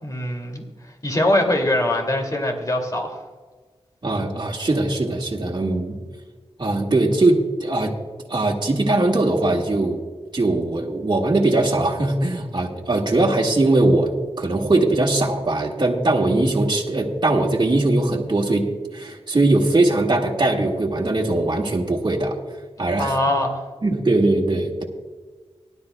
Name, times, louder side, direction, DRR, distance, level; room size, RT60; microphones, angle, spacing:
voice 1, 0.0-3.2 22.8-23.6, left 1 dB, 35° left, 2 dB, 2.3 m, -23 dB
voice 2, 4.0-6.0 6.6-7.9 8.3-10.0 10.3-22.4 22.8-23.2 23.8-24.8, right 2 dB, 45° right, -2 dB, 1.6 m, -20 dB
19.0 x 11.5 x 2.2 m, 1.4 s
wide cardioid pair, 70°, 11 cm